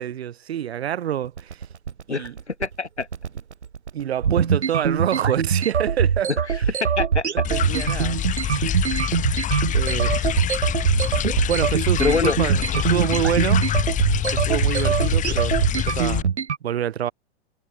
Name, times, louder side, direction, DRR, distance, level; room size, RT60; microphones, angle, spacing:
voice 1, 0.0-1.7 2.1-2.4 3.9-6.3 7.3-8.7 9.7-10.5 11.5-13.6 14.3-16.3 16.6-17.1, right 10 dB, 65° right, 2.7 m, -27 dB
sound 1, 1.2-16.6, right 7 dB, 85° right, 0.9 m, -23 dB
voice 2, 2.1-3.1 6.5-7.4 8.1-8.2 12.0-12.4, left 4 dB, 90° left, 2.5 m, -26 dB
sound 2, 7.4-16.2, left 11 dB, 20° left, 1.2 m, -26 dB
figure-of-eight pair, 100°, 33 cm